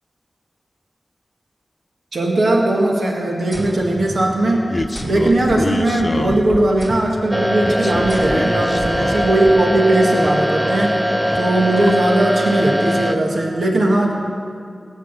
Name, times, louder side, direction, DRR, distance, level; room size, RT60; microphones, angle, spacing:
voice 1, 2.1-4.7 5.0-14.1, right 1 dB, 85° right, -1 dB, 1.6 m, -18 dB
sound 1, 3.5-4.6 4.9-6.2 6.8-7.3 8.1-8.7, equal, 40° right, 4.0 m, -33 dB
sound 2, 4.7-6.8 7.6-9.6 9.9-10.9 11.1-11.9, left 1 dB, 35° left, 0.8 m, -27 dB
sound 3, 7.3-13.2, equal, 15° right, 1.1 m, -20 dB
17.5 x 8.2 x 6.7 m, 2.3 s
cardioid pair, 45°, 0 cm